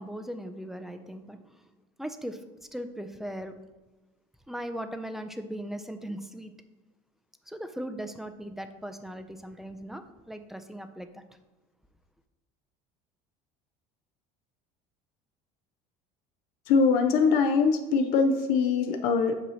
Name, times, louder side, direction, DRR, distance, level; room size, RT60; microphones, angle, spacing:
voice 1, 0.0-1.6 2.0-2.4 2.7-3.5 4.5-6.5 7.5-11.2, equal, ahead, 8 dB, 0.4 m, -38 dB
voice 2, 16.7-19.3, left 5 dB, 65° left, 6 dB, 0.6 m, -23 dB
8.2 x 2.9 x 6.2 m, 1.1 s
cardioid pair, 145°, 16 cm